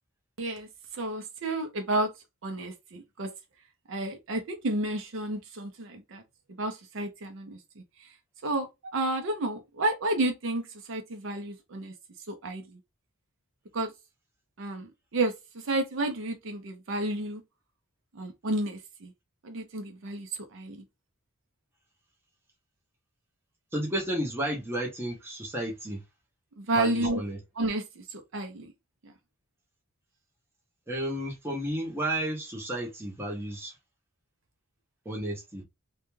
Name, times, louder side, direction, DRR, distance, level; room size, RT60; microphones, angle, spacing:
voice 1, 0.4-0.7 0.9-2.1 2.4-3.3 3.9-6.2 6.6-8.1 8.4-8.7 8.9-11.9 12.3-12.8 13.7-13.9 14.6-15.3 15.6-17.4 18.1-19.1 19.4-20.8 26.6-27.2 27.6-28.7 29.0-29.1, right 2 dB, 55° right, 0.5 m, -31 dB
voice 2, 23.7-26.0 26.7-27.4 30.9-33.8 35.0-35.6, right 1 dB, 10° right, 0.7 m, -32 dB
2.3 x 2.2 x 3.0 m
head